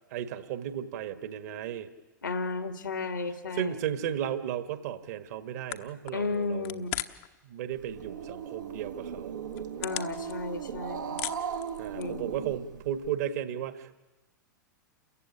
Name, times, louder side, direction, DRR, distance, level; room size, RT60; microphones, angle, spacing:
voice 1, 0.1-1.9 3.5-6.9 7.4-9.4 11.8-13.9, right 10 dB, 55° right, 10 dB, 1.8 m, -34 dB
voice 2, 2.2-3.9 6.1-6.9 9.8-11.2 11.9-12.5, left 4 dB, 75° left, 8 dB, 2.3 m, -34 dB
sound 1, 5.4-5.5 5.7-7.4 7.6-8.2 8.7-8.8 9.3-10.7 11.0-12.3, left 15 dB, 45° left, 1.1 m, -38 dB
Growling, 7.7-13.1, right 7 dB, 70° right, 1.5 m, -38 dB
29.0 x 15.0 x 9.0 m, 1.1 s
figure-of-eight pair, 95°, 10 cm